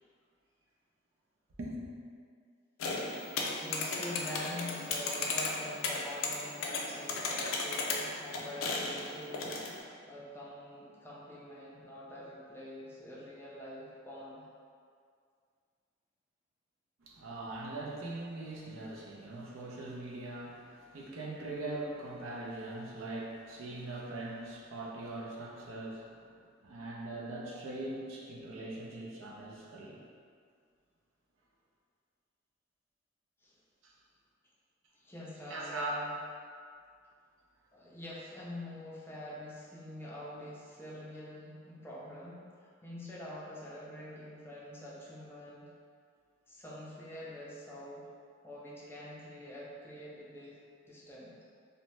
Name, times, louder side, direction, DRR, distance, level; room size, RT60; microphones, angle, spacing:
voice 1, 1.6-1.9 17.0-26.3 26.6-30.0 33.8-33.9 35.5-35.9 36.5-36.6, right 2 dB, 85° right, -3 dB, 0.5 m, -41 dB
sound 1, 2.8-9.8, left 3 dB, 80° left, 0.4 m, -35 dB
voice 2, 3.5-9.6 10.1-14.4 33.4-33.5 35.0-36.1 37.7-45.7 46.5-48.1 48.4-50.6 50.8-51.3, left 1 dB, 10° left, -6 dB, 0.4 m, -45 dB
2.7 x 2.0 x 3.1 m, 2.2 s
head